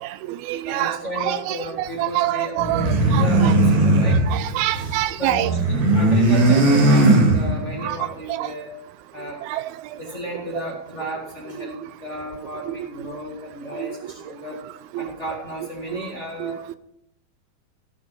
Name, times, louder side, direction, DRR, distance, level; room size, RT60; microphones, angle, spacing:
voice 1, 0.0-3.5 4.1-5.5 7.8-8.5 9.4-9.7 10.5-10.6 11.6-11.7 12.7-13.1 13.7-13.9 14.9-15.1 15.9-16.1 16.4-16.8, right 15 dB, 85° right, 15 dB, 2.5 m, -27 dB
voice 2, 0.6-4.2 5.2-8.7 9.1-9.4 10.0-14.6 15.0-16.6, equal, 30° left, -2 dB, 1.3 m, -33 dB
sound 1, 2.6-5.0 5.3-7.8, right 2 dB, 55° right, 3.1 m, -18 dB
17.0 x 5.8 x 5.3 m, 0.78 s
omnidirectional pair, 4.4 m